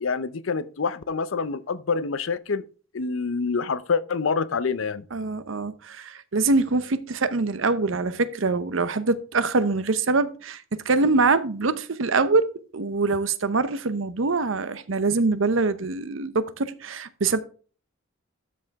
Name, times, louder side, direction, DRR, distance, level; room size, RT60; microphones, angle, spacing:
voice 1, 0.0-2.6 2.9-5.1, left 5 dB, 75° left, 0.6 m, -26 dB
voice 2, 5.1-17.4, right 3 dB, 70° right, 0.8 m, -24 dB
12.5 x 4.8 x 3.5 m
head